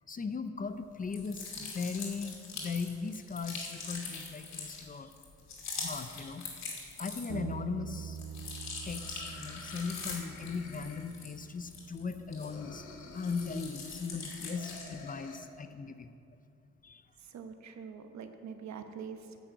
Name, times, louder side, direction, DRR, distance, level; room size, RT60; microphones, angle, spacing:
voice 1, 0.1-5.1 5.8-6.6 7.0-8.2 8.9-16.1 16.8-17.0, left 5 dB, 30° left, 10 dB, 0.6 m, -38 dB
sound 1, 1.0-7.5 7.9-12.8 13.1-15.0, left 4 dB, 60° left, 2.6 m, -43 dB
Bass guitar, 7.3-13.5, right 8 dB, 45° right, 0.6 m, -46 dB
sound 2, 8.2-8.3 8.7-11.5 12.4-13.8 14.5-15.4, left 4 dB, 85° left, 1.2 m, -50 dB
voice 2, 17.2-19.4, right 6 dB, 65° right, 7 dB, 1.0 m, -44 dB
10.5 x 6.2 x 8.0 m, 2.5 s
cardioid pair, 90°, 30 cm